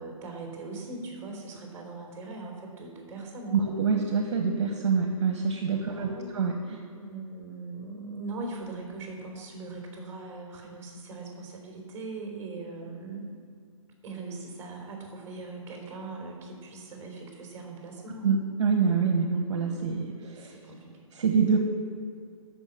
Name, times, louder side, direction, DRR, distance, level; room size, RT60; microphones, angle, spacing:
voice 1, 0.0-3.7 5.8-6.4 6.9-13.3 14.0-18.3 20.4-20.8, right 3 dB, 15° right, 0 dB, 3.5 m, -40 dB
voice 2, 3.5-6.8 18.2-20.6 21.2-21.6, right 5 dB, 55° right, 3 dB, 1.3 m, -26 dB
13.0 x 5.9 x 7.1 m, 2.3 s
hypercardioid pair, 145°, 18 cm